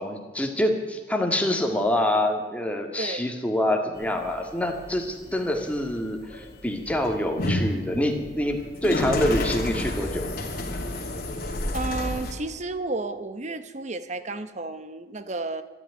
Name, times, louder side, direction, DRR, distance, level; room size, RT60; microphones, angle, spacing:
voice 1, 0.0-10.3, left 1 dB, 10° left, 3 dB, 2.0 m, -26 dB
sound 1, 4.0-12.3, left 1 dB, 60° left, 2.7 m, -31 dB
voice 2, 11.7-15.6, right 2 dB, 45° right, 11 dB, 1.1 m, -32 dB
13.0 x 11.0 x 9.7 m, 1.2 s
head